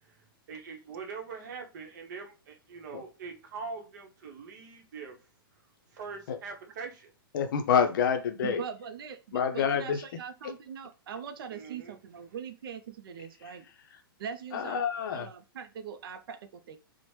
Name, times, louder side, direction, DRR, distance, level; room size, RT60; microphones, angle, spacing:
voice 1, 0.1-5.2 5.9-7.1 11.5-12.0, right 5 dB, 50° right, 0.8 m, -43 dB
voice 2, 7.3-8.6 9.3-10.0 13.4-13.5 14.5-15.3, left 7 dB, 60° left, 0.5 m, -27 dB
voice 3, 8.4-13.6 14.2-14.8 15.1-16.8, right 7 dB, 70° right, 0.4 m, -41 dB
2.9 x 2.1 x 3.1 m
hypercardioid pair, 150°, 12 cm